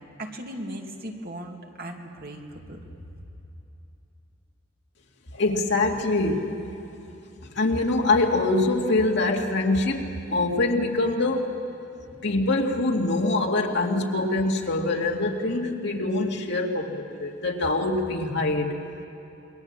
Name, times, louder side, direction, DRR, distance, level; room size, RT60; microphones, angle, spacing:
voice 1, 0.2-3.1, right 1 dB, 50° right, 2 dB, 2.4 m, -38 dB
voice 2, 5.3-6.5 7.6-11.5 12.2-18.7, left 2 dB, 60° left, 1 dB, 2.3 m, -24 dB
28.0 x 22.0 x 7.4 m, 3.0 s
head